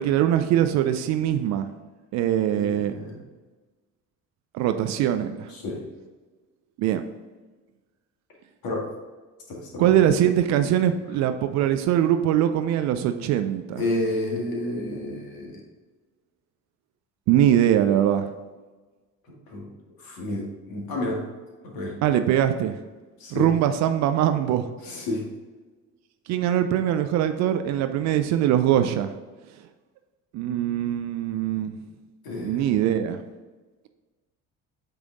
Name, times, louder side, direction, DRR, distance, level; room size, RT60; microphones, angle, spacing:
voice 1, 0.0-1.7 2.1-2.9 4.5-5.5 6.8-7.0 9.8-13.8 17.3-18.3 22.0-22.7 23.3-24.7 26.3-29.1 30.3-31.8 32.4-33.2, right 11 dB, 40° right, 8 dB, 0.4 m, -22 dB
voice 2, 2.4-3.2 5.5-5.8 8.6-8.9 9.5-9.9 13.8-15.6 19.2-19.7 20.0-21.3 21.6-22.0 23.2-23.5 24.8-25.3 32.2-32.7, left 1 dB, 45° left, -1 dB, 1.8 m, -31 dB
8.0 x 3.4 x 3.8 m, 1.3 s
figure-of-eight pair, 55°, 48 cm